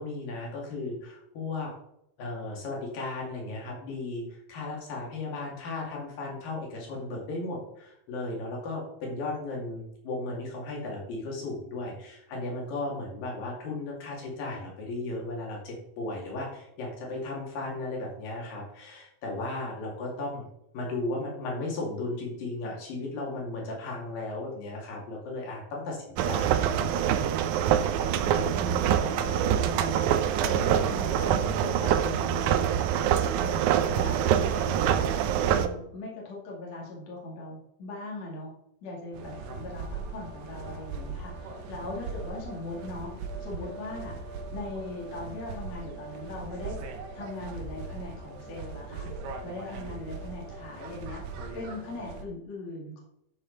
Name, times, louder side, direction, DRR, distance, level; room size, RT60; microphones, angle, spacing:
voice 1, 0.0-1.7 2.2-20.5 20.7-27.1, left 2 dB, 70° left, -2 dB, 4.0 m, -35 dB
sound 1, 26.2-35.7, right 9 dB, 80° right, 1.8 m, -25 dB
voice 2, 28.1-33.0 33.3-38.5 38.8-46.8 47.1-49.1 49.4-53.0, left 2 dB, 50° left, -3 dB, 3.2 m, -40 dB
sound 2, 39.1-52.2, right 4 dB, 65° right, 1.9 m, -39 dB
12.5 x 6.8 x 4.0 m, 0.78 s
omnidirectional pair, 4.2 m